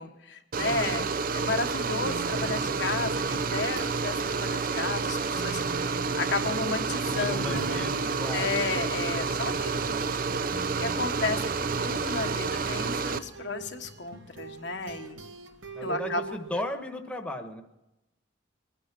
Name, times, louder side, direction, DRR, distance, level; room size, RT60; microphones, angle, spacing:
voice 1, 0.0-7.9 8.3-9.8 10.8-15.2 15.8-16.4, left 3 dB, 65° left, 4 dB, 1.3 m, -33 dB
sound 1, 0.5-13.2, right 4 dB, 45° right, 0.5 m, -29 dB
voice 2, 0.6-1.1 7.3-9.3 9.6-10.0 15.7-17.6, left 1 dB, 5° left, 3 dB, 1.3 m, -37 dB
sound 2, 1.6-16.7, right 2 dB, 85° right, 1.2 m, -41 dB
22.5 x 9.7 x 6.0 m, 0.95 s
head